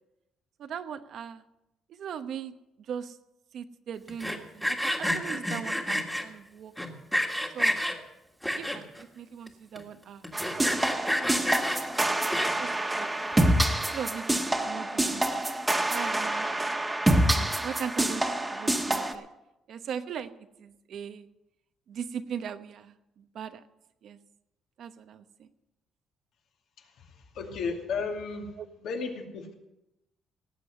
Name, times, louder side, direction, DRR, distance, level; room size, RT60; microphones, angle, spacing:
voice 1, 0.6-1.4 1.9-2.5 2.9-3.2 3.5-6.7 7.5-7.8 8.6-11.5 12.6-13.1 13.9-15.5 15.9-16.5 17.3-19.3 19.7-20.3 20.6-21.3 21.9-23.6 24.0-24.2 24.8-25.5, right 8 dB, 65° right, 10 dB, 0.9 m, -39 dB
Sawing, 4.1-6.2 6.8-8.0 8.4-9.0 9.5-9.6 9.8-9.9 10.2-12.7, equal, 5° left, 1.7 m, -29 dB
sound 1, 10.3-19.1, right 1 dB, 15° right, 1.3 m, -27 dB
voice 2, 26.8-28.5 28.8-29.5, left 5 dB, 75° left, 2 dB, 2.5 m, -34 dB
18.0 x 7.7 x 6.6 m, 0.91 s
cardioid pair, 115°, 0 cm